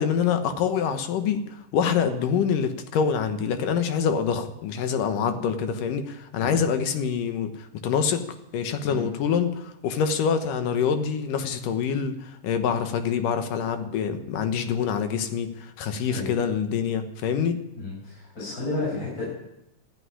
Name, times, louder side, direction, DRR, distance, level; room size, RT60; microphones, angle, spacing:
voice 1, 0.0-8.2 8.5-17.6, left 7 dB, 75° left, 7 dB, 2.8 m, -26 dB
voice 2, 17.8-19.2, left 3 dB, 25° left, -8 dB, 7.3 m, -32 dB
14.0 x 9.7 x 9.8 m, 0.87 s
omnidirectional pair, 3.9 m